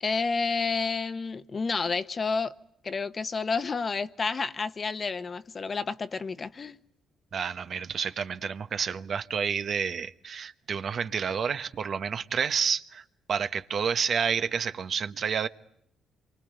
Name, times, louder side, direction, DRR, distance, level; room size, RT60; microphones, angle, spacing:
voice 1, 0.0-2.5 2.8-6.8, left 4 dB, 35° left, 1.1 m, -30 dB
voice 2, 7.3-15.5, right 6 dB, 55° right, 1.2 m, -30 dB
27.0 x 24.0 x 9.0 m
cardioid pair, 90°, 0 cm